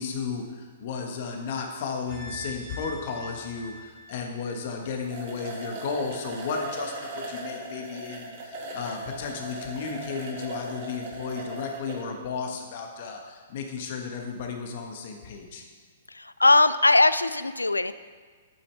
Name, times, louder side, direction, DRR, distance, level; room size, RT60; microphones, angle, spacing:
voice 1, 0.0-15.6, left 5 dB, 50° left, 3 dB, 1.6 m, -34 dB
sound 1, 2.1-5.3 5.7-5.8, left 1 dB, 25° right, 2.2 m, -42 dB
sound 2, 4.7-4.8 5.0-12.0, right 1 dB, 45° right, 2.1 m, -38 dB
voice 2, 16.1-17.9, left 2 dB, 90° left, 14 dB, 0.4 m, -20 dB
11.5 x 8.8 x 3.5 m, 1.5 s
figure-of-eight pair, 115°, 0 cm